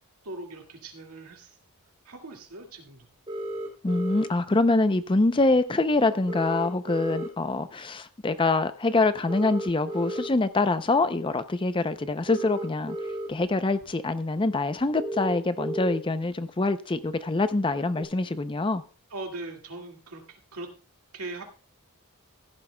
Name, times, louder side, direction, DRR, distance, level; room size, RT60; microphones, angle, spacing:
voice 1, 0.2-1.6 2.0-3.1 19.1-20.7 21.1-21.4, right 2 dB, 85° right, 2.0 m, -40 dB
sound 1, 3.3-4.3 6.3-7.3 9.3-10.3 12.3-13.3 13.8-13.9 15.0-16.0 18.0-18.1, right 1 dB, 25° right, 3.0 m, -33 dB
voice 2, 3.8-13.0 13.3-18.8, left 2 dB, 20° left, 0.5 m, -25 dB
16.0 x 11.0 x 2.2 m
head